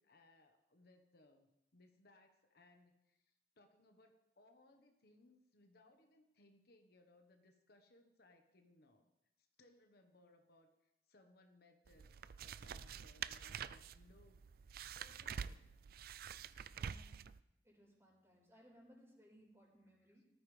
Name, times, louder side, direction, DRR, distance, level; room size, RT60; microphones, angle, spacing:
voice 1, 0.0-9.1 9.4-15.8, left 2 dB, 60° left, 5 dB, 1.2 m, -68 dB
sound 1, 11.9-17.4, right 7 dB, 60° right, 0.4 m, -47 dB
voice 2, 16.7-17.3 17.6-20.3, equal, 15° right, -3 dB, 4.7 m, -65 dB
18.5 x 13.5 x 3.3 m, 0.87 s
head